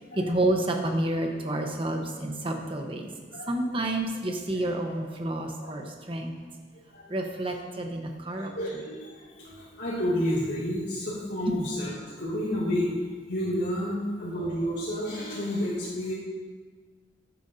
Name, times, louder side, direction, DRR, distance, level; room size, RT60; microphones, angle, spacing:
voice 1, 0.1-3.1 3.5-6.3 7.1-8.5, right 1 dB, 30° right, 2 dB, 1.0 m, -29 dB
voice 2, 3.3-3.7 4.5-5.0 5.6-5.7 6.9-7.2 8.3-12.9 13.3-16.1, equal, 75° left, -10 dB, 2.4 m, -31 dB
14.0 x 9.0 x 2.7 m, 1.5 s
head